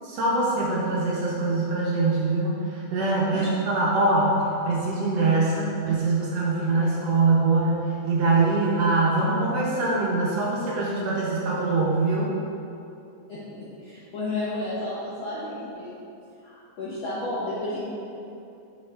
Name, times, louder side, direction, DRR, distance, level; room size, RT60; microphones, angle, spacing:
voice 1, 0.1-12.3, right 3 dB, 70° right, -5 dB, 1.7 m, -23 dB
voice 2, 13.8-16.0 16.4-17.8, left 2 dB, 65° left, -10 dB, 1.2 m, -32 dB
7.5 x 4.1 x 3.2 m, 2.7 s
omnidirectional pair, 3.3 m